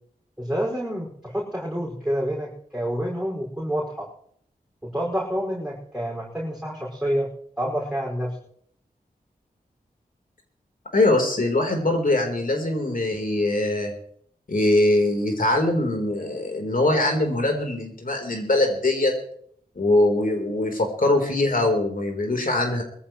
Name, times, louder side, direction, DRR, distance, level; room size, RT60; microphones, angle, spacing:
voice 1, 0.4-4.1 4.8-7.3 7.6-8.4, equal, 5° right, -5 dB, 5.6 m, -28 dB
voice 2, 10.9-13.9 14.5-19.1 19.8-22.8, left 2 dB, 60° left, 2 dB, 3.8 m, -22 dB
22.0 x 14.0 x 3.1 m, 0.62 s
wide cardioid pair, 55°, 16 cm